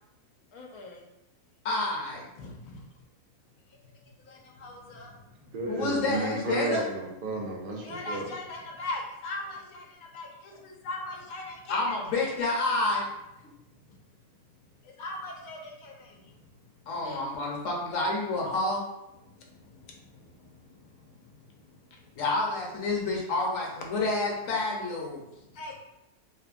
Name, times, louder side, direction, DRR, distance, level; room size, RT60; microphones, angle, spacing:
voice 1, 0.5-1.0 2.4-2.9 3.9-5.5 7.8-12.3 14.8-16.5 17.0-17.5 18.4-18.6 19.2-22.2 25.3-25.7, left 2 dB, 85° left, 1 dB, 1.1 m, -41 dB
voice 2, 1.6-2.2 5.7-6.8 11.7-13.0 16.9-18.8 22.2-25.2, left 2 dB, 65° left, -2 dB, 1.1 m, -29 dB
voice 3, 5.5-8.3, right 2 dB, 65° right, -1 dB, 0.5 m, -33 dB
3.1 x 2.1 x 2.4 m, 0.90 s
omnidirectional pair, 1.5 m